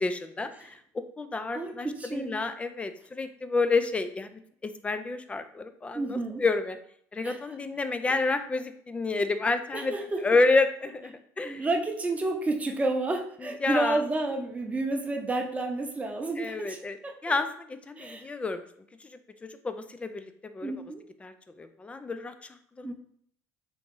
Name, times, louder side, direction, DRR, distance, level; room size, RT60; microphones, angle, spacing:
voice 1, 0.0-0.8 1.2-6.8 7.1-9.9 10.2-11.6 13.4-14.0 16.4-17.0 17.2-18.6 19.4-20.3 20.5-20.7 21.2-22.3 22.8-22.9, left 3 dB, 15° left, 9 dB, 0.5 m, -29 dB
voice 2, 1.5-2.3 5.9-6.4 7.2-7.4 9.7-10.2 11.4-17.1 18.0-18.3 20.6-21.0 22.8-22.9, right 2 dB, 20° right, 3 dB, 0.8 m, -30 dB
3.8 x 2.9 x 3.7 m, 0.65 s
supercardioid pair, 95°, 7 cm